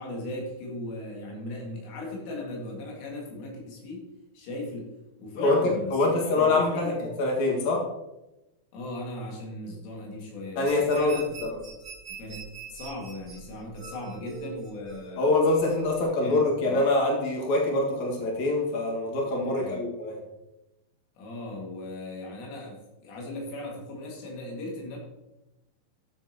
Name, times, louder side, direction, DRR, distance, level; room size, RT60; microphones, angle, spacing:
voice 1, 0.0-4.0 4.3-4.9 5.2-7.2 8.7-11.2 12.1-12.4 12.7-15.4 16.2-16.8 19.5-19.9 21.2-25.0, left 1 dB, 90° left, -1 dB, 4.7 m, -38 dB
voice 2, 5.9-6.9 7.2-7.8 10.6-11.1 11.4-11.6 15.2-20.2, left 2 dB, 50° left, -2 dB, 2.4 m, -24 dB
sound 1, 10.6-16.0, right 5 dB, 40° right, 1.8 m, -43 dB
14.0 x 7.6 x 2.9 m, 0.97 s
omnidirectional pair, 5.4 m